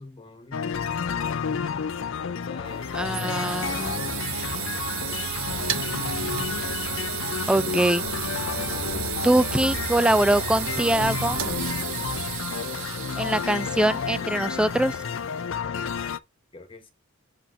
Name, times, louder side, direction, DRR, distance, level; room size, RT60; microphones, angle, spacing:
voice 1, 0.0-2.1 2.4-4.0 4.5-5.4 8.4-9.1 16.5-16.9, left 2 dB, 25° left, 1.3 m, -45 dB
sound 1, 0.5-16.2, left 6 dB, 60° left, 0.5 m, -31 dB
sound 2, 2.7-15.5, right 10 dB, 65° right, 0.7 m, -33 dB
voice 2, 2.9-3.9 7.5-8.1 9.2-11.4 13.2-15.0, right 1 dB, 5° right, 0.3 m, -23 dB
sound 3, 5.5-12.4, left 2 dB, 85° left, 1.3 m, -39 dB
7.1 x 4.9 x 3.2 m
head